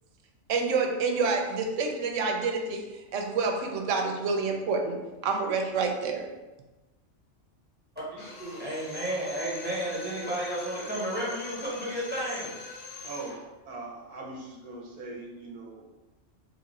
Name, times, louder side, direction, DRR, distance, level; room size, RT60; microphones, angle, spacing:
voice 1, 0.5-6.3, right 4 dB, 80° right, 3 dB, 0.9 m, -28 dB
voice 2, 8.1-12.5, right 1 dB, 10° right, -6 dB, 0.9 m, -32 dB
Drill, 8.2-13.5, left 3 dB, 55° left, 0.8 m, -43 dB
voice 3, 13.0-15.9, right 2 dB, 45° right, -1 dB, 0.8 m, -41 dB
3.1 x 2.5 x 4.1 m, 1.1 s
omnidirectional pair, 1.3 m